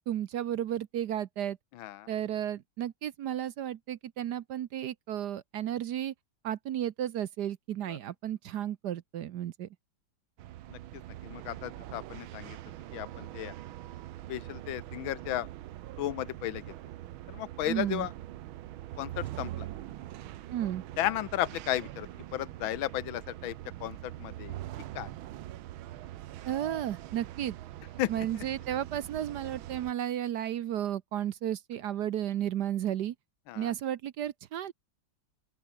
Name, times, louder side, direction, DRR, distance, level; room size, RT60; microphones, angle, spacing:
voice 1, 0.0-1.6 2.1-6.1 6.4-9.7 17.7-18.1 20.5-20.8 26.4-27.6 28.1-33.1 33.6-34.7, right 11 dB, 65° right, 1.2 m, -33 dB
voice 2, 1.7-2.1 7.9-8.0 10.7-10.8 11.2-12.6 12.9-13.5 14.3-15.5 16.0-16.7 17.3-18.1 19.0-19.7 21.0-24.6 24.9-25.1 28.0-28.3 33.5-33.7, left 13 dB, 80° left, 1.6 m, -34 dB
sound 1, 10.4-29.9, right 14 dB, 85° right, 1.6 m, -43 dB
open air
omnidirectional pair, 2.2 m